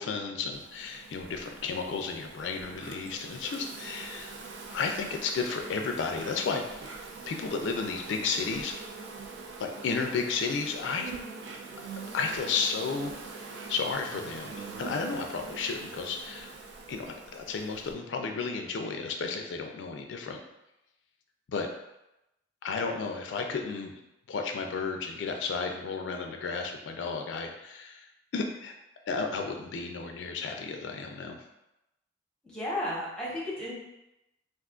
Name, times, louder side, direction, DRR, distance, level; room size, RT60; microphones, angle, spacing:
voice 1, 0.0-4.4 4.7-7.0 7.3-8.8 9.6-11.1 11.8-16.5 16.9-17.1 17.3-20.4 21.5-21.7 22.6-23.9 24.3-28.1 28.3-28.7 29.1-31.4, left 4 dB, 90° left, 4 dB, 0.4 m, -33 dB
Insect, 0.5-17.9, right 4 dB, 85° right, 0.4 m, -43 dB
voice 2, 32.4-33.7, left 1 dB, 5° left, -6 dB, 0.9 m, -33 dB
2.5 x 2.4 x 3.6 m, 0.90 s
head